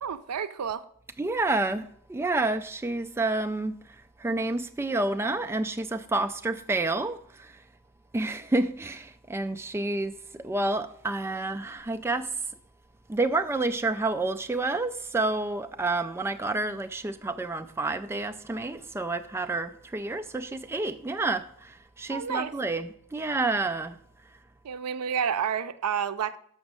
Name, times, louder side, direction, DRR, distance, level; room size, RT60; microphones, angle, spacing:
voice 1, 0.0-0.8 22.1-22.5 24.6-26.4, right 7 dB, 90° right, 0.5 m, -30 dB
voice 2, 1.2-3.8 4.2-7.6 8.1-12.3 13.1-23.9, right 2 dB, 10° right, 0.3 m, -29 dB
6.3 x 6.0 x 6.2 m
head